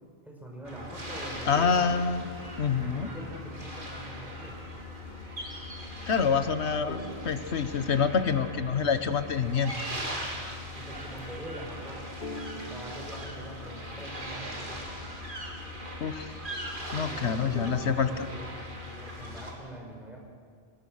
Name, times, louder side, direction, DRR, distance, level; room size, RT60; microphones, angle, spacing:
voice 1, 0.2-1.8 2.8-4.7 10.8-12.0 12.5-14.9 17.0-17.8 18.1-18.5 19.0-20.2, right 1 dB, ahead, -2 dB, 5.4 m, -44 dB
sound 1, 0.6-19.5, left 1 dB, 45° right, 3.4 m, -40 dB
voice 2, 1.5-2.3 2.6-3.1 6.1-9.7 16.0-16.3 16.9-18.1, left 6 dB, 70° left, 10 dB, 1.4 m, -27 dB
sound 2, 1.5-3.9 6.9-9.1 12.2-15.8 17.5-18.2, left 1 dB, 50° left, 1.8 m, -44 dB
24.0 x 20.5 x 6.6 m, 2.1 s
omnidirectional pair, 1.2 m